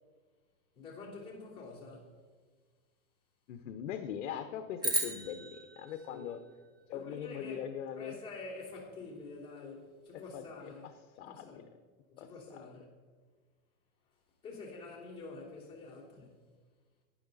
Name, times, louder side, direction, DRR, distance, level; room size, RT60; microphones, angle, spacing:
voice 1, 0.7-2.1 6.1-6.4 6.9-7.7 7.9-11.6 12.2-12.9 14.4-16.4, left 3 dB, 10° left, 2.9 m, -47 dB
voice 2, 3.5-6.4 6.9-8.1 10.3-10.4 11.2-11.7 12.2-12.6, left 9 dB, 55° left, 0.8 m, -41 dB
sound 1, 4.8-7.2, right 1 dB, 10° right, 0.7 m, -36 dB
12.0 x 9.7 x 3.9 m
supercardioid pair, 170°, 43 cm